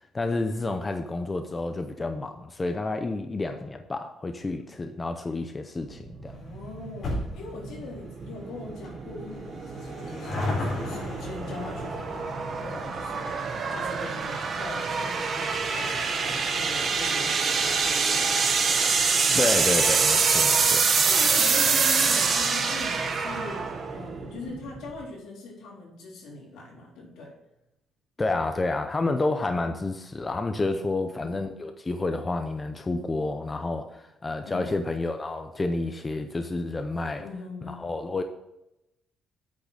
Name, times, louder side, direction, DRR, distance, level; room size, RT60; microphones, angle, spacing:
voice 1, 0.1-6.4 19.3-20.9 28.2-37.2 37.7-38.2, left 2 dB, 15° left, 6 dB, 0.6 m, -29 dB
sound 1, 5.9-25.0, right 5 dB, 35° right, 1.1 m, -26 dB
voice 2, 6.3-18.8 21.1-27.3 29.7-29.9 30.7-31.3 34.4-34.7 37.2-37.8, left 2 dB, 80° left, -3 dB, 3.9 m, -41 dB
sound 2, 6.3-19.0 19.3-19.4 20.3-20.4 20.6-20.7 20.9-21.0, left 2 dB, 40° left, 4.1 m, -38 dB
8.5 x 6.1 x 6.4 m, 0.88 s
cardioid pair, 170°, 0 cm